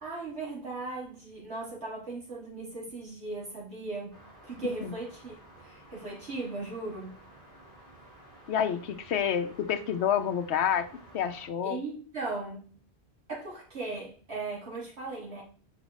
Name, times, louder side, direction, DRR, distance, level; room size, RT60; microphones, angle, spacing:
voice 1, 0.0-7.1 11.6-12.6 13.3-15.4, right 3 dB, 80° right, 2.9 m, -38 dB
sound 1, 4.1-11.5, right 1 dB, 55° right, 2.6 m, -53 dB
voice 2, 8.5-10.9 11.1-11.8, left 8 dB, 75° left, 1.0 m, -28 dB
5.9 x 4.4 x 4.1 m
omnidirectional pair, 1.1 m